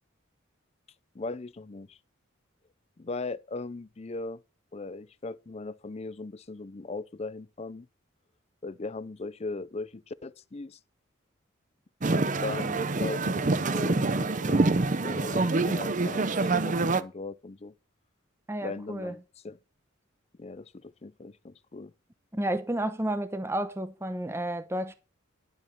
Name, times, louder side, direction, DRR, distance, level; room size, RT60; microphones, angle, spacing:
voice 1, 1.1-2.0 3.0-4.4 4.7-7.9 8.6-10.8 12.1-14.7 15.0-17.7 18.6-19.2 19.4-19.6 20.4-21.9, left 3 dB, 30° left, 0.5 m, -38 dB
sound 1, 12.0-17.0, right 3 dB, 40° right, 0.7 m, -26 dB
voice 2, 18.5-19.1 22.3-25.0, right 1 dB, 15° right, 0.9 m, -31 dB
11.5 x 8.0 x 5.6 m
head